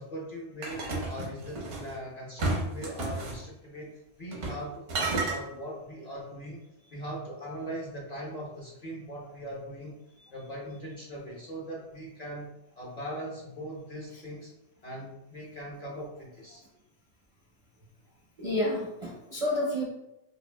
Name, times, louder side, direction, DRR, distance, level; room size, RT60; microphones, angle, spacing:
voice 1, 0.0-3.9 4.2-6.6 6.9-9.9 10.3-12.5 12.8-14.5 14.8-16.6, equal, 45° left, -3 dB, 0.6 m, -40 dB
sound 1, 0.6-1.9 2.4-3.4 4.3-4.6 4.9-5.4, right 2 dB, 90° right, 1.2 m, -31 dB
voice 2, 18.4-19.8, left 1 dB, 45° right, -3 dB, 0.5 m, -29 dB
4.8 x 2.4 x 2.2 m, 0.87 s
omnidirectional pair, 1.2 m